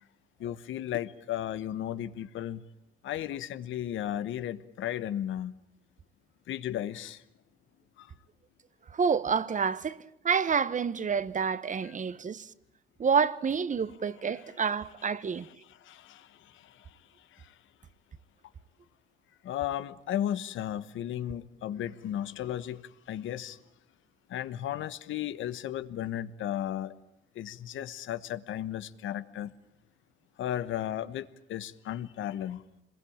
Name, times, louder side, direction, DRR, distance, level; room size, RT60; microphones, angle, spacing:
voice 1, 0.4-2.6 3.0-5.5 6.5-7.2 8.0-8.1 11.8-11.9 15.9-16.3 19.4-22.8 23.1-23.6 24.3-26.9 27.3-29.5 30.4-32.6, left 11 dB, 80° left, 1.3 m, -34 dB
voice 2, 8.9-10.0 10.2-12.5 13.0-15.5, right 6 dB, 40° right, 1.2 m, -28 dB
27.0 x 21.5 x 8.8 m
cardioid pair, 90°, 20 cm